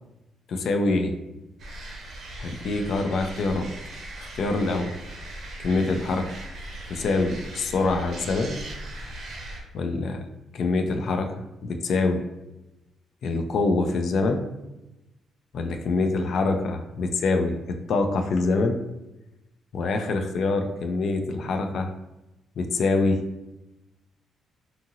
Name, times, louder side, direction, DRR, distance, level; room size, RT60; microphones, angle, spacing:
voice 1, 0.5-1.1 2.4-3.7 4.2-4.9 5.6-6.3 6.9-8.6 9.7-10.2 10.5-12.3 13.2-14.5 15.5-18.8 19.7-21.9 22.6-23.2, left 3 dB, 65° left, 5 dB, 0.3 m, -25 dB
sound 1, 1.6-9.6, right 1 dB, 65° right, 0.7 m, -39 dB
2.7 x 2.6 x 2.6 m, 0.97 s
cardioid pair, 90°, 0 cm